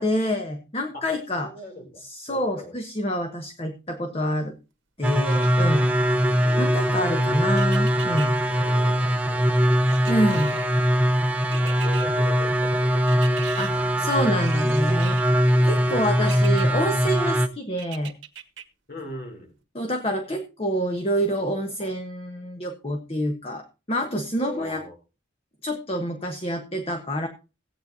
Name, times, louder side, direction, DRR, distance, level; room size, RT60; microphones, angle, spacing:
voice 1, 0.0-1.5 2.0-4.5 5.0-6.0 6.6-8.4 10.1-10.6 13.6-15.2 15.6-18.1 19.7-24.8 25.6-27.3, equal, 30° left, 5 dB, 1.3 m, -27 dB
voice 2, 1.4-2.8 6.2-7.5 8.5-9.8 10.4-10.8 11.5-13.3 14.8-15.0 15.5-16.1 18.9-19.6 21.8-21.9 24.4-25.0, left 1 dB, 50° left, 3 dB, 3.1 m, -41 dB
sound 1, 5.0-17.5, equal, 10° right, 0.8 m, -21 dB
sound 2, 5.3-6.0 7.6-8.3 9.9-10.8 11.5-12.1 13.1-13.7 14.4-15.3 16.3-16.7 17.8-18.6 19.1-19.2, right 9 dB, 80° right, 1.5 m, -41 dB
17.0 x 9.1 x 2.7 m, 0.30 s
head